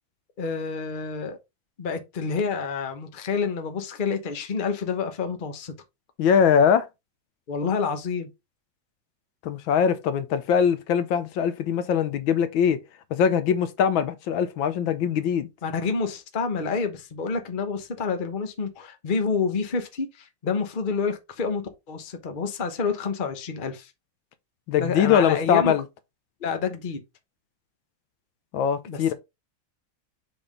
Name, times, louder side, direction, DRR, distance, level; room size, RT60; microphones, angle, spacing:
voice 1, 0.4-1.4 1.8-5.7 7.5-8.3 15.6-23.9 24.8-25.7 26.4-27.0 28.9-29.1, left 5 dB, 35° left, 0.9 m, -28 dB
voice 2, 6.2-6.9 9.4-12.8 13.1-15.5 24.7-25.8 28.5-29.1, left 8 dB, 80° left, 1.5 m, -22 dB
6.9 x 3.7 x 3.7 m
omnidirectional pair, 2.2 m